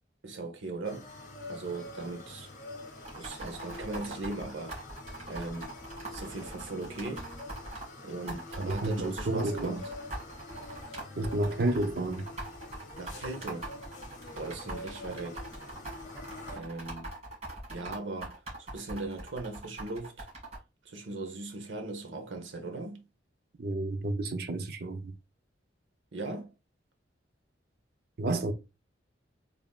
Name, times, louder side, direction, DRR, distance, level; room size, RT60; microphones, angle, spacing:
voice 1, 0.2-1.1 1.4-2.5 3.2-4.8 5.3-5.7 6.1-7.3 8.0-9.8 13.0-13.7 14.3-15.4 16.5-17.1 17.7-20.3 20.8-23.0 26.1-26.5, right 2 dB, 80° right, 0.9 m, -38 dB
sound 1, 0.8-16.6, left 2 dB, 40° left, 0.8 m, -46 dB
sound 2, 3.0-7.8 8.3-20.6, right 2 dB, 35° right, 1.9 m, -42 dB
voice 2, 8.6-9.8 11.2-12.3 23.6-25.1 28.2-28.5, right 2 dB, 55° right, 0.5 m, -30 dB
3.6 x 3.6 x 2.3 m
head